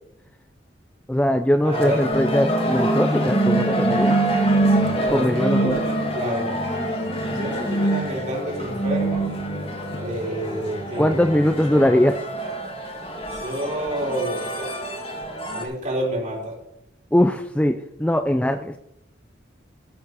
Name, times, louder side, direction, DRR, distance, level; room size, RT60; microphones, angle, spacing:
voice 1, 1.1-4.2 5.1-5.8 11.0-12.1 17.1-18.8, left 1 dB, 5° left, 8 dB, 0.4 m, -21 dB
voice 2, 1.6-2.1 4.9-6.6 7.2-9.3 10.0-11.1 11.7-12.0 13.3-14.9 15.5-16.6, right 1 dB, 40° right, -2 dB, 4.0 m, -29 dB
sound 1, 1.7-15.6, right 1 dB, 30° left, 1.8 m, -25 dB
14.5 x 7.1 x 5.5 m, 0.83 s
head